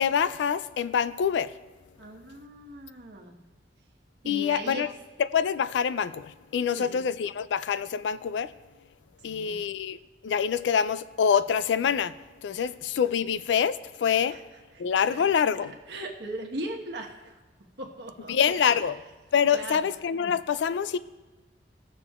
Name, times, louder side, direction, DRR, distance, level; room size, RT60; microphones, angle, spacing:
voice 1, 0.0-1.5 4.3-4.9 5.2-8.5 9.2-12.2 12.4-14.4 14.8-15.7 18.3-19.0 19.3-21.0, left 7 dB, 75° left, 0.3 m, -26 dB
voice 2, 2.0-3.4 4.2-4.9 6.7-6.9 9.2-9.6 14.3-14.4 14.7-15.2 15.7-17.3 17.8-18.8 19.5-19.8, right 1 dB, 65° right, 1.3 m, -39 dB
18.5 x 6.8 x 2.4 m
head